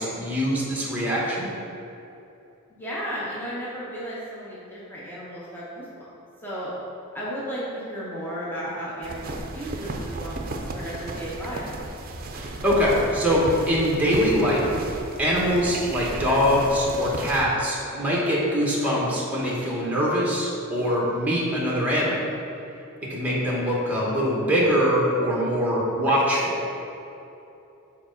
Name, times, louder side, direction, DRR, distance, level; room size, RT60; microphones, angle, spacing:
voice 1, 0.0-1.5 12.3-14.7 15.2-22.3 23.1-26.7, equal, 5° right, -4 dB, 1.2 m, -23 dB
voice 2, 2.8-6.1 6.4-6.7 7.1-11.6, equal, 10° left, -8 dB, 0.9 m, -34 dB
sound 1, 9.0-17.5, right 2 dB, 40° right, 0.5 m, -34 dB
4.9 x 4.2 x 5.2 m, 2.8 s
head